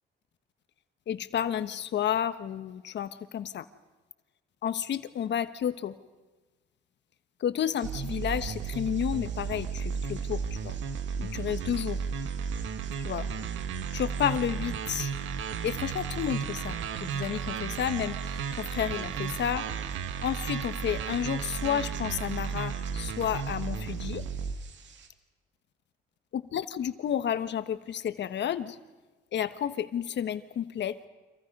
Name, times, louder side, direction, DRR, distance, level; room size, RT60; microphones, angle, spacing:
voice 1, 1.1-3.7 4.6-5.9 7.4-10.7 11.2-12.0 13.0-13.3 13.9-15.1 15.6-19.7 20.2-24.2 26.3-28.8 29.3-31.1, left 9 dB, 60° left, 11 dB, 1.2 m, -31 dB
sound 1, 7.8-25.1, right 7 dB, 65° right, 2.3 m, -52 dB
sound 2, 7.8-24.6, right 6 dB, 85° right, 1.5 m, -34 dB
30.0 x 26.5 x 5.4 m, 1.2 s
cardioid pair, 90°, 20 cm